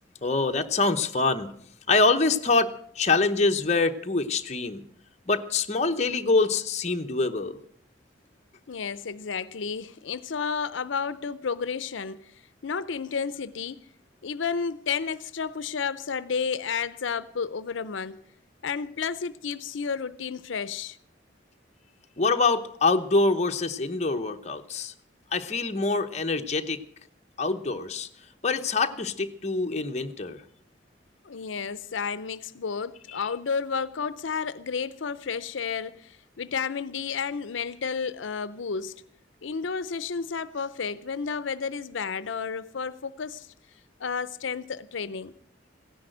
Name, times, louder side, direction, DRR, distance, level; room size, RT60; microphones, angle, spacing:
voice 1, 0.2-1.5 1.9-4.8 5.3-7.6 22.2-24.9 25.3-26.8 27.4-28.1 28.4-30.4 33.1-33.2, left 3 dB, 35° left, 0.9 m, -25 dB
voice 2, 8.7-12.3 12.6-13.9 14.2-18.2 18.6-21.0 31.2-39.0 39.4-43.5 44.0-45.3, left 6 dB, 85° left, 0.6 m, -31 dB
16.0 x 10.5 x 7.8 m
head